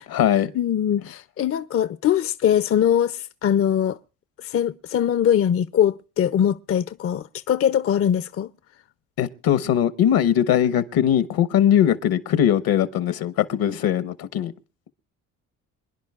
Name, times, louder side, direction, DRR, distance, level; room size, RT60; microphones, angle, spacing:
voice 1, 0.0-0.5 9.2-14.5, left 10 dB, 70° left, 1.1 m, -20 dB
voice 2, 0.5-4.0 4.4-8.5, left 9 dB, 40° left, 0.5 m, -22 dB
26.0 x 10.5 x 2.4 m
supercardioid pair, 60°, 38 cm